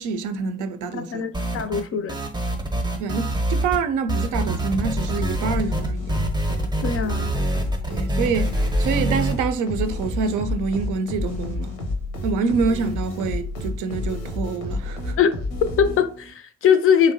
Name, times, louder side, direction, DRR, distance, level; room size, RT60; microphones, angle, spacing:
voice 1, 0.0-1.2 3.0-6.2 7.9-11.8 12.2-15.2, right 5 dB, 65° right, 0.5 m, -26 dB
voice 2, 0.9-2.2 6.8-7.3 15.2-15.3 15.6-17.1, left 7 dB, 40° left, 0.4 m, -21 dB
sound 1, 1.3-1.8 2.1-3.8 4.1-9.3, right 1 dB, 15° right, 0.6 m, -25 dB
sound 2, 4.7-16.3, left 2 dB, 80° left, 0.7 m, -30 dB
2.8 x 2.0 x 2.6 m
hypercardioid pair, 45°, 34 cm